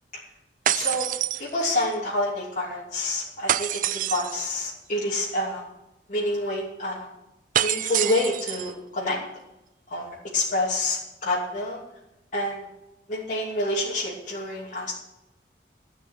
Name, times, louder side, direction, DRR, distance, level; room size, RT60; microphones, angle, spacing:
voice 1, 0.7-1.1 1.4-5.7 6.1-7.0 7.6-9.2 9.9-11.8 12.3-12.7 13.1-14.9, left 1 dB, 45° left, -7 dB, 2.9 m, -28 dB
sound 1, 0.7-1.9 3.5-4.5 7.5-8.7, right 11 dB, 50° right, 0.4 m, -26 dB
15.0 x 5.8 x 9.1 m, 0.92 s
head